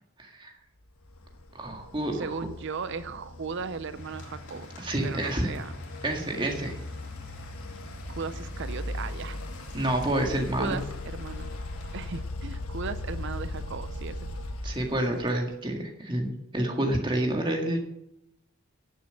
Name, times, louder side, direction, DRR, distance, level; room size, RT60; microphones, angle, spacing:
voice 1, 0.2-0.5 1.5-2.4 4.8-5.5 6.0-6.7 9.7-10.8 14.6-17.8, right 1 dB, 20° right, 1 dB, 1.8 m, -28 dB
sound 1, 1.1-15.5, left 1 dB, 75° left, 1.3 m, -39 dB
voice 2, 2.1-4.7 5.0-5.7 8.1-9.4 10.5-11.5 11.9-14.2, right 5 dB, 55° right, 12 dB, 0.5 m, -36 dB
sound 2, 3.9-12.2, left 1 dB, 55° left, 3.3 m, -46 dB
10.5 x 7.2 x 7.7 m, 0.87 s
head